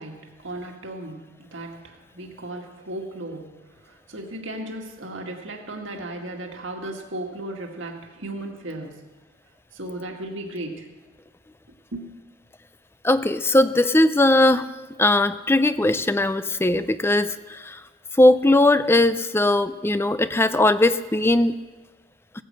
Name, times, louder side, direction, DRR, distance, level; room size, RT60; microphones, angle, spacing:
voice 1, 0.0-9.0 9.7-10.9 11.9-12.1, right 1 dB, 65° right, 1 dB, 2.1 m, -36 dB
voice 2, 13.0-14.7 15.0-17.8 18.2-21.5, left 1 dB, 10° left, 13 dB, 0.4 m, -19 dB
17.0 x 10.0 x 7.7 m, 1.3 s
head